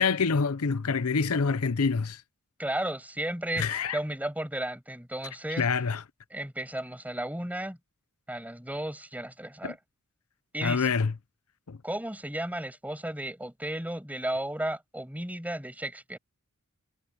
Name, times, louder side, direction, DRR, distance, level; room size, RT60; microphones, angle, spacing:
voice 1, 0.0-2.2 3.6-4.0 5.6-6.0 9.6-9.7 10.6-11.1 11.7-11.8, left 5 dB, 75° left, 0.7 m, -26 dB
voice 2, 2.6-5.7 6.3-7.8 8.3-9.8 10.5-10.9 11.8-16.2, right 1 dB, 5° right, 6.3 m, -34 dB
head